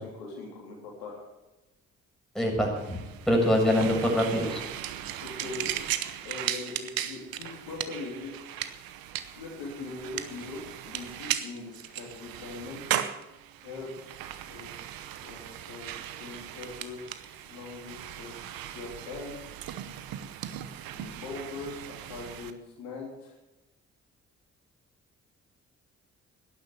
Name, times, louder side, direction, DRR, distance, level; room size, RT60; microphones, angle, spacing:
voice 1, 0.0-1.3 5.2-5.7 6.2-8.3 9.3-13.1 13.6-13.9 14.5-14.8 15.2-19.4 20.9-23.3, left 3 dB, 80° left, -2 dB, 3.6 m, -41 dB
voice 2, 2.3-4.6, equal, ahead, -1 dB, 7.2 m, -25 dB
sound 1, 2.8-22.5, right 11 dB, 70° right, 1.0 m, -37 dB
12.0 x 10.5 x 8.2 m, 1.0 s
hypercardioid pair, 40°, 37 cm